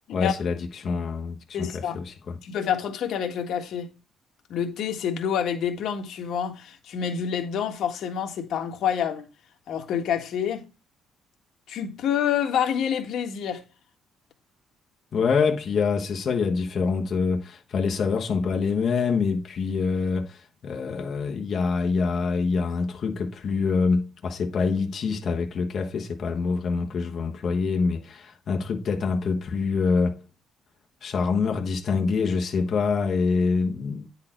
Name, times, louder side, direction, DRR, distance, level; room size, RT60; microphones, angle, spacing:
voice 1, 0.1-2.4 15.1-30.2 31.0-34.1, left 4 dB, 45° left, 1.2 m, -25 dB
voice 2, 1.5-2.0 2.4-3.9 4.5-9.3 9.7-10.6 11.7-13.6, left 8 dB, 60° left, 1.6 m, -27 dB
9.6 x 4.3 x 4.5 m
cardioid pair, 155°, 0 cm